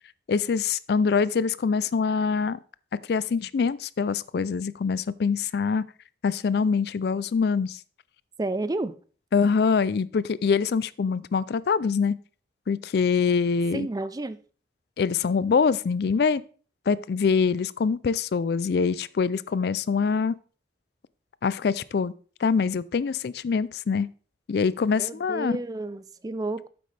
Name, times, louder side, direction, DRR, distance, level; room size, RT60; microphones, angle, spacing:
voice 1, 0.3-2.6 3.1-5.8 6.2-7.8 9.3-12.2 12.7-13.9 15.0-16.4 16.9-20.4 21.4-22.1 22.4-24.1 24.5-25.6, left 5 dB, 60° left, 0.4 m, -24 dB
voice 2, 8.4-8.9 13.7-14.4 25.0-26.7, right 2 dB, 20° right, 0.4 m, -31 dB
9.3 x 7.7 x 3.3 m
head